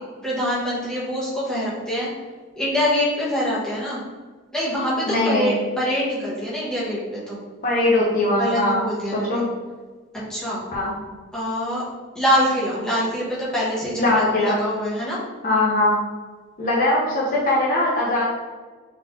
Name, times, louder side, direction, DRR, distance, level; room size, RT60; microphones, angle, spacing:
voice 1, 0.2-2.1 2.6-4.0 4.5-7.4 8.4-9.4 10.3-10.6 11.3-11.8 12.1-15.2, equal, 5° left, -9 dB, 1.2 m, -24 dB
voice 2, 5.1-5.5 7.6-8.8 9.1-9.4 10.7-10.9 14.0-14.6 15.4-16.0 16.6-18.3, left 2 dB, 40° left, -5 dB, 0.8 m, -20 dB
3.8 x 3.5 x 3.6 m, 1.4 s
head